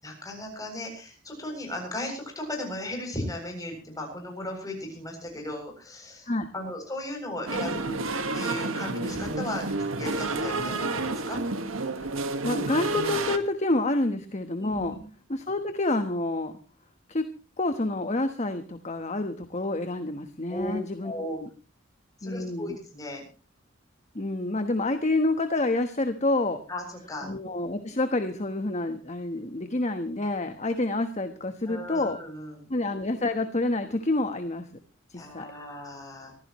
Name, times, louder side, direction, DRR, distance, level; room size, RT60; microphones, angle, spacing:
voice 1, 0.0-8.0 8.3-11.4 14.6-15.0 20.5-20.7 21.0-21.4 22.2-23.2 26.7-27.3 31.7-32.7 35.1-36.3, left 1 dB, 20° left, 1 dB, 7.6 m, -36 dB
sound 1, 7.5-13.4, right 3 dB, 85° right, 1.7 m, -30 dB
voice 2, 12.4-14.9 15.3-16.5 17.1-17.2 17.6-21.1 21.4-21.5 22.2-22.8 24.1-26.6 27.2-32.2 32.7-34.7 35.1-35.5, left 2 dB, 35° left, 8 dB, 1.2 m, -28 dB
24.5 x 15.0 x 3.1 m, 0.35 s
head